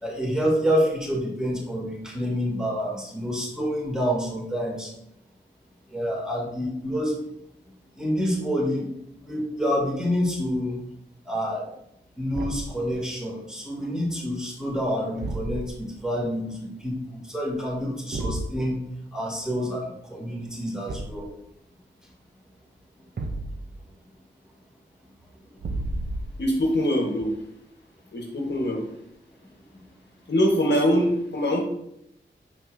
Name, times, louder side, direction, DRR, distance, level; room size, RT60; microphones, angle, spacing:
voice 1, 0.0-4.9 5.9-7.2 8.0-8.9 9.2-10.8 11.3-11.7 12.2-18.8 19.1-21.3, equal, 5° right, -4 dB, 2.2 m, -28 dB
Thump thud, 12.3-12.8 15.2-15.9 18.1-18.6 20.9-21.3 23.2-23.8 25.6-26.6, right 2 dB, 55° right, 0.7 m, -32 dB
voice 2, 26.4-27.3 28.1-28.8 30.3-31.6, equal, 60° left, 0 dB, 1.1 m, -23 dB
6.3 x 6.0 x 2.5 m, 0.78 s
wide cardioid pair, 65°, 20 cm